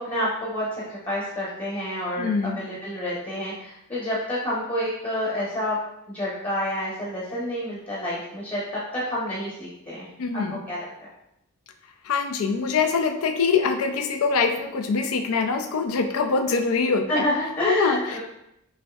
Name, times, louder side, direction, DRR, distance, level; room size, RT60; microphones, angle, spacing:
voice 1, 0.0-5.8 6.1-10.1 10.3-10.8 17.1-18.2, left 1 dB, 25° left, -7 dB, 0.9 m, -29 dB
voice 2, 2.2-2.6 10.2-10.6 12.0-17.2 17.7-18.0, left 5 dB, 65° left, 6 dB, 0.4 m, -23 dB
6.2 x 2.6 x 2.4 m, 0.81 s
head